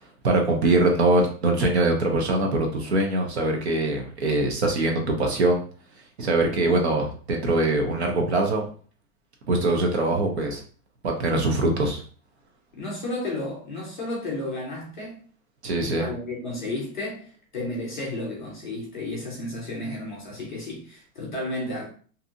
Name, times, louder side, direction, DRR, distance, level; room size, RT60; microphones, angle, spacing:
voice 1, 0.2-5.6 6.2-8.7 9.5-10.6 11.0-12.0 15.6-16.1, right 2 dB, 45° right, 0.5 m, -23 dB
voice 2, 6.5-6.8 12.8-15.2 16.0-21.9, left 2 dB, 35° left, 0.4 m, -32 dB
2.6 x 2.6 x 2.4 m
supercardioid pair, 180°, 47 cm